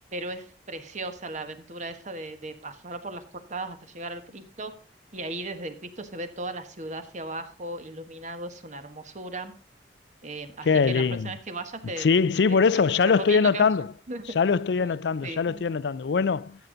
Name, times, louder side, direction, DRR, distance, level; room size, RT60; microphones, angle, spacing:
voice 1, 0.1-4.7 5.1-9.5 10.2-13.7 14.1-14.4 14.8-14.9 15.2-15.6, right 2 dB, 45° right, 1.4 m, -37 dB
voice 2, 10.7-11.3 12.0-13.9 14.4-16.7, left 5 dB, 70° left, 0.4 m, -22 dB
13.0 x 8.2 x 3.9 m
head